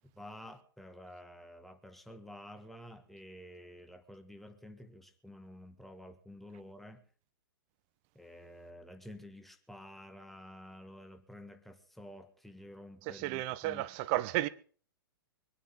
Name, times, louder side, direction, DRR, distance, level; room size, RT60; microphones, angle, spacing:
voice 1, 0.1-7.0 8.1-13.9, left 1 dB, ahead, 1.6 m, -51 dB
voice 2, 13.0-14.5, right 16 dB, 35° right, 0.8 m, -33 dB
23.5 x 9.3 x 5.2 m
figure-of-eight pair, 105°, 12 cm